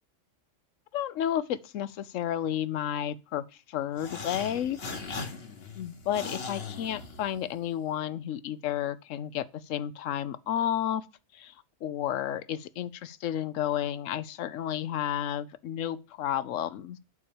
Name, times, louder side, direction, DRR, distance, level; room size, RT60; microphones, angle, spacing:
voice 1, 0.9-4.8 5.7-11.0 11.3-11.5 11.8-17.0, left 10 dB, 75° left, 1.0 m, -32 dB
sound 1, 3.9-7.7, left 4 dB, 50° left, 1.4 m, -39 dB
8.4 x 4.3 x 7.0 m
omnidirectional pair, 1.4 m